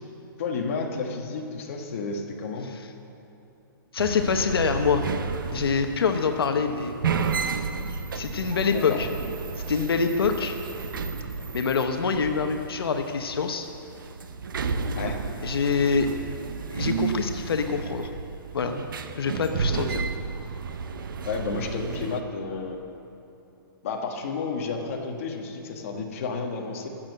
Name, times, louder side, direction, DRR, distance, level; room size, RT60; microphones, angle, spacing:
voice 1, 0.4-2.7 8.7-9.0 15.0-15.2 21.2-22.8 23.8-26.9, left 4 dB, 35° left, 1 dB, 1.4 m, -31 dB
voice 2, 3.9-5.1 5.5-6.9 8.1-9.1 9.7-10.6 11.5-13.7 15.4-16.1 16.7-18.1 18.5-18.8 19.2-20.1, left 5 dB, 80° left, 6 dB, 1.0 m, -25 dB
sound 1, 4.0-22.2, right 5 dB, 65° right, 0.8 m, -32 dB
14.0 x 7.4 x 8.0 m, 2.8 s
hypercardioid pair, 175°, 12 cm